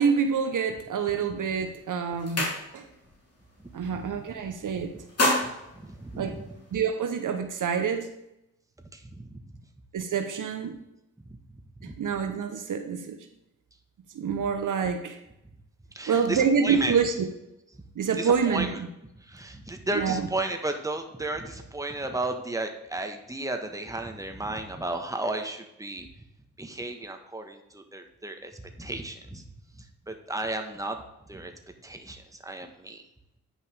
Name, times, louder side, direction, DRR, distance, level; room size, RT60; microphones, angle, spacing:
voice 1, 0.0-2.8 3.7-4.9 6.2-6.4 6.7-8.1 9.9-10.8 12.0-13.2 14.1-15.2 16.1-17.3 18.0-18.9 19.9-20.3, right 6 dB, 60° right, 7 dB, 0.9 m, -27 dB
sound 1, 1.4-1.6 1.9-3.1 3.4-3.7 4.0-4.6 4.9-6.8, left 1 dB, 45° left, 3.1 m, -29 dB
voice 2, 4.6-5.0 5.7-6.6 8.9-9.3 11.8-11.9 15.9-17.0 18.2-18.8 19.1-26.1 26.6-29.4 30.1-31.0 31.3-31.5 31.8-33.0, right 2 dB, 10° right, 5 dB, 1.3 m, -34 dB
9.7 x 5.4 x 3.5 m, 0.87 s
supercardioid pair, 50°, 35 cm